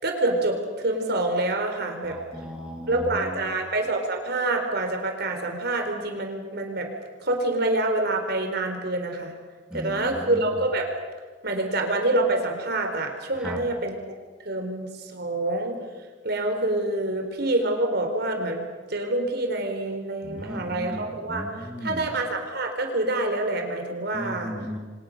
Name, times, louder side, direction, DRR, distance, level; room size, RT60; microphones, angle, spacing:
voice 1, 0.0-2.2 2.9-6.9 7.2-9.3 9.7-10.9 11.4-14.0 14.4-15.8 16.2-18.6 18.9-24.5, right 2 dB, 60° right, 4 dB, 4.3 m, -26 dB
voice 2, 2.0-3.6 9.7-10.4 13.4-13.6 20.2-22.1 24.1-24.8, equal, 5° right, 0 dB, 3.0 m, -36 dB
29.5 x 25.0 x 6.6 m, 1.4 s
head